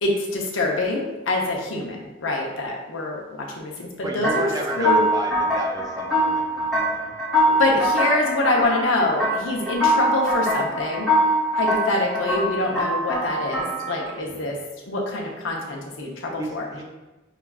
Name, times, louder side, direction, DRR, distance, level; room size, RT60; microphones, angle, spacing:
voice 1, 0.0-3.9 4.1-4.5 4.8-5.0 7.6-11.1 11.6-14.6 14.9-16.7, left 2 dB, 85° left, 0 dB, 0.7 m, -25 dB
voice 2, 4.0-7.1 7.5-7.6 14.3-14.5 16.4-16.8, right 1 dB, 20° right, -1 dB, 0.5 m, -33 dB
sound 1, 4.2-14.1, equal, ahead, 0.8 m, -23 dB
5.6 x 2.3 x 2.3 m, 1.1 s
head